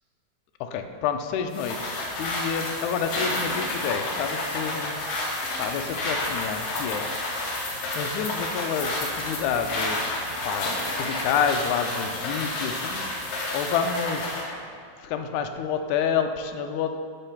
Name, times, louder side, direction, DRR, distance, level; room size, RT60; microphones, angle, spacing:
voice 1, 0.6-5.0 5.6-7.2 7.5-14.7 15.0-17.0, left 7 dB, 80° left, 6 dB, 1.8 m, -29 dB
sound 1, 1.5-14.5, left 2 dB, 60° left, 2.0 m, -30 dB
9.9 x 3.8 x 5.8 m, 2.2 s
omnidirectional pair, 3.7 m